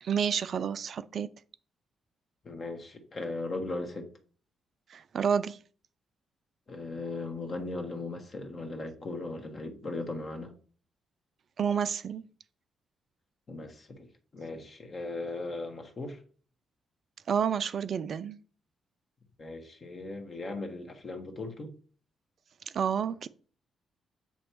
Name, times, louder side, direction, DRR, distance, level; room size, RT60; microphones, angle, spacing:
voice 1, 0.0-1.3 4.9-5.6 11.6-12.2 17.3-18.4 22.7-23.3, right 7 dB, 55° right, 0.4 m, -29 dB
voice 2, 2.4-4.1 6.7-10.5 13.5-14.1 14.3-16.2 19.4-21.7, left 2 dB, 45° left, 1.3 m, -38 dB
7.2 x 3.0 x 4.6 m
hypercardioid pair, 40°, 0 cm